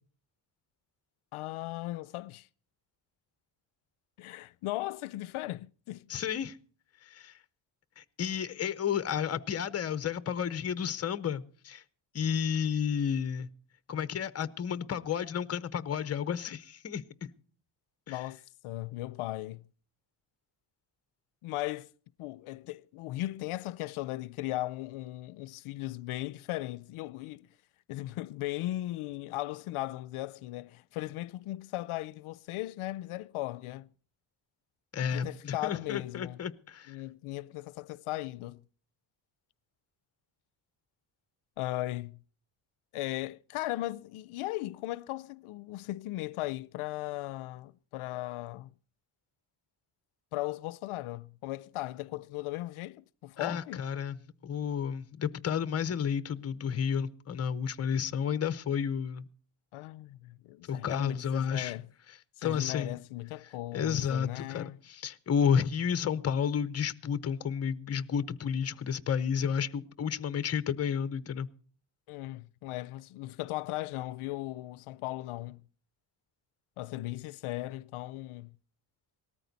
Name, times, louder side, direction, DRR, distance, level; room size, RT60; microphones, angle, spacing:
voice 1, 1.3-2.5 4.2-6.1 18.1-19.6 21.4-21.9 22.2-27.5 27.9-33.9 35.0-36.4 36.9-38.6 41.6-42.2 42.9-48.7 50.3-53.8 59.7-61.9 62.4-64.8 72.1-75.6 76.8-78.5, left 17 dB, 80° left, 0.6 m, -37 dB
voice 2, 6.1-6.5 7.1-7.3 8.0-11.8 12.1-13.5 13.9-17.0 18.1-18.2 34.9-37.0 53.4-59.2 60.7-61.7 62.4-62.9 63.7-71.5, left 7 dB, 30° left, 0.7 m, -31 dB
18.5 x 13.5 x 4.0 m
cardioid pair, 145°, 49 cm